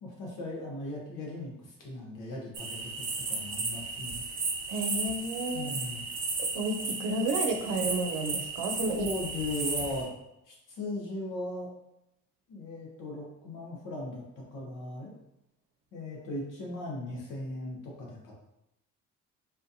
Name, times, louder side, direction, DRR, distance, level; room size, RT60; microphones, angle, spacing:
voice 1, 0.0-4.2 5.5-6.0 8.8-10.1 10.5-11.7 12.5-14.2 14.5-15.1 15.9-18.4, left 1 dB, 80° left, -2 dB, 1.2 m, -38 dB
sound 1, 2.5-10.0, right 3 dB, 40° right, 1.2 m, -34 dB
voice 2, 4.7-5.7 6.4-9.0, right 2 dB, 85° right, 5 dB, 0.6 m, -31 dB
4.2 x 2.6 x 2.7 m, 0.85 s
supercardioid pair, 80°, 31 cm